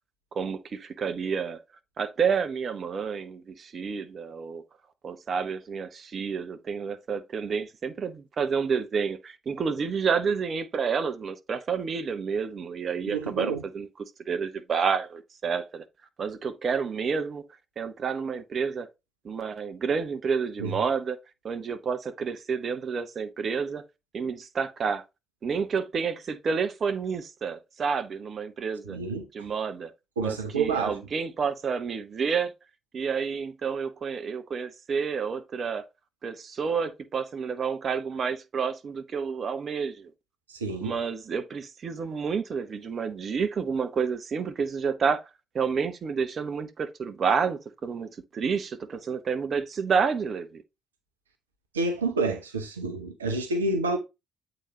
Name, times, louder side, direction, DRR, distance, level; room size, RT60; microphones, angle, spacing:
voice 1, 0.3-1.6 2.0-4.6 5.0-13.9 14.3-15.8 16.2-17.4 17.8-18.9 19.2-21.2 21.4-23.8 24.1-25.0 25.4-29.0 29.3-29.9 30.2-32.5 32.9-35.8 36.2-40.1 40.8-45.2 45.5-50.6, right 6 dB, 50° right, 1.0 m, -29 dB
voice 2, 13.1-13.6 20.6-20.8 28.9-29.3 30.2-31.0 40.5-40.9 51.7-54.0, right 3 dB, 85° right, 0.7 m, -28 dB
8.2 x 3.9 x 3.1 m
figure-of-eight pair, 45°, 0 cm